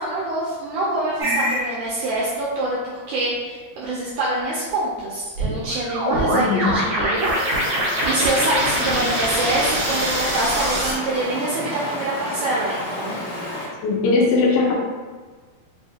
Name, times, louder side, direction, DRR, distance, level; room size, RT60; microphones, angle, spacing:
voice 1, 0.0-7.7 8.0-13.2, right 2 dB, 85° right, -6 dB, 1.7 m, -25 dB
sound 1, 1.2-1.6 5.4-10.9, right 1 dB, 70° right, 1.2 m, -23 dB
voice 2, 6.3-6.7 13.8-14.8, left 3 dB, 80° left, -1 dB, 2.2 m, -19 dB
Stream, 7.9-13.7, left 1 dB, 60° left, 1.1 m, -30 dB
5.6 x 2.5 x 2.7 m, 1.4 s
omnidirectional pair, 4.3 m